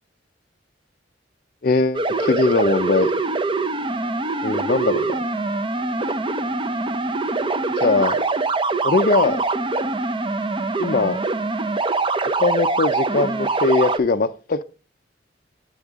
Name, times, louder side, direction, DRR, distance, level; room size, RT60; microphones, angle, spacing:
voice 1, 1.6-3.1 4.4-5.1 7.8-8.2 8.8-9.4 10.8-11.2 12.4-14.6, left 3 dB, 45° left, 0.5 m, -20 dB
sound 1, 1.9-14.0, right 3 dB, 25° right, 0.6 m, -23 dB
8.2 x 7.0 x 3.5 m
head